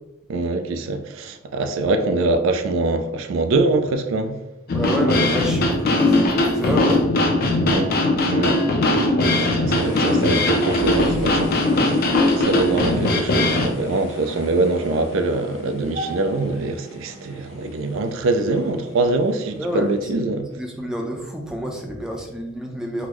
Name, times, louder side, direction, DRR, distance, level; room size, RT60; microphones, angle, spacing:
voice 1, 0.3-4.4 7.7-7.9 8.3-8.6 9.2-11.5 11.9-20.5, right 2 dB, 75° right, 0.4 m, -23 dB
sound 1, 4.7-13.7, left 1 dB, 50° left, 0.5 m, -19 dB
voice 2, 4.7-7.6 19.6-19.9 20.5-23.1, equal, 5° right, 0.5 m, -28 dB
sound 2, 9.7-20.0, left 1 dB, 80° left, 0.8 m, -38 dB
3.9 x 2.0 x 3.0 m
head